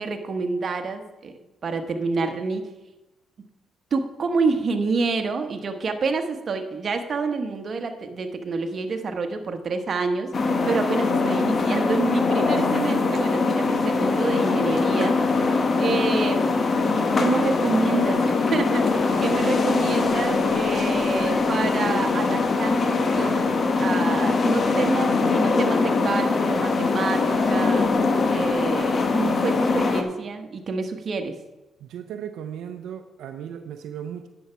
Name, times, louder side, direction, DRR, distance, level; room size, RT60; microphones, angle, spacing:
voice 1, 0.0-1.3 1.6-2.6 3.9-15.1 15.8-16.5 17.0-23.5 23.8-27.9 28.3-31.4, right 4 dB, 45° right, 6 dB, 1.2 m, -28 dB
sound 1, 10.3-30.0, left 3 dB, 40° left, 1.2 m, -22 dB
voice 2, 31.8-34.3, right 9 dB, 80° right, 7 dB, 0.6 m, -36 dB
10.0 x 7.2 x 5.7 m, 1.0 s
cardioid pair, 90°, 0 cm